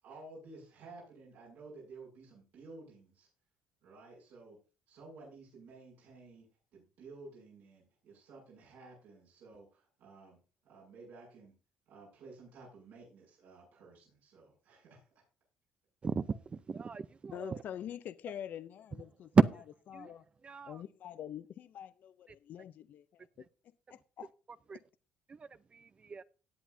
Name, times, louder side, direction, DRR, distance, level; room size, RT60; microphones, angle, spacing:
voice 1, 0.0-3.3 3.8-4.6 4.9-6.5 6.7-10.4 10.6-11.5 11.9-15.2, right 3 dB, 75° right, 7.2 m, -53 dB
voice 2, 16.0-17.6 19.3-19.5 19.9-20.1 20.4-20.8 24.7-24.8 25.3-26.2, right 5 dB, 30° right, 0.6 m, -31 dB
voice 3, 17.3-19.3 19.9-20.2 20.7-23.3 23.9-24.3 24.7-24.8, left 10 dB, 55° left, 0.5 m, -45 dB
18.0 x 8.2 x 2.7 m
supercardioid pair, 90°, 4 cm